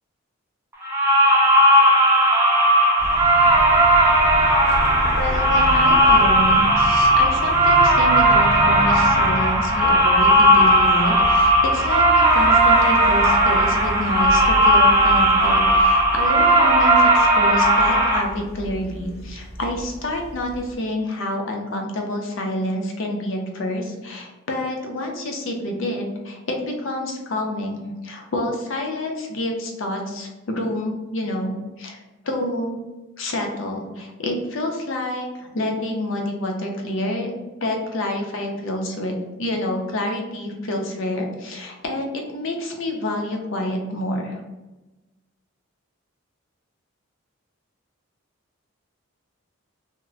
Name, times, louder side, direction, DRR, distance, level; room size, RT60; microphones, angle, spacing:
sound 1, 0.8-18.2, right 1 dB, 10° right, 0.4 m, -16 dB
sound 2, 3.0-20.7, equal, 45° left, 0.9 m, -31 dB
voice 1, 5.1-32.0 32.2-32.8 33.2-37.4 37.6-39.1 39.4-44.4, left 1 dB, 65° left, 2 dB, 0.5 m, -28 dB
2.1 x 2.0 x 3.7 m, 1.1 s
head